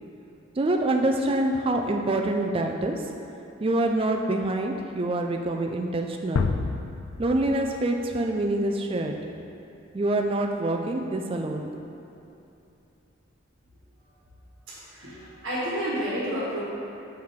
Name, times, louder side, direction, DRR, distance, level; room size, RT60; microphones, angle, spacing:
voice 1, 0.6-3.0 3.6-6.5 7.2-9.2 9.9-11.8, right 1 dB, 25° right, 3 dB, 0.3 m, -26 dB
sound 1, 6.4-9.3, left 4 dB, 80° left, 0.3 m, -31 dB
voice 2, 14.7-16.6, equal, 65° right, -9 dB, 1.4 m, -30 dB
5.7 x 4.8 x 3.6 m, 2.9 s
head